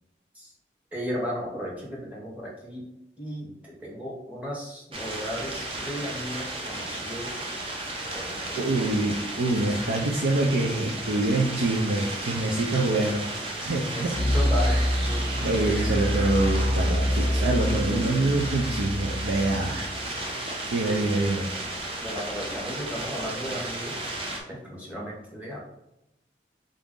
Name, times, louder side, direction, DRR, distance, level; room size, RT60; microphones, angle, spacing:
voice 1, 0.9-2.9 3.2-7.8 8.1-8.8 13.6-15.3 15.6-15.8 18.3-18.6 22.0-24.2 24.5-25.6, equal, 10° right, -4 dB, 0.9 m, -35 dB
sound 1, 4.9-24.4, right 2 dB, 30° right, 0.6 m, -34 dB
voice 2, 8.6-13.3 13.6-14.1 15.4-19.9 20.7-21.5, right 2 dB, 80° right, 0 dB, 0.5 m, -25 dB
sound 2, 14.1-20.9, equal, 60° right, 0.9 m, -27 dB
4.0 x 2.5 x 3.6 m, 0.87 s
head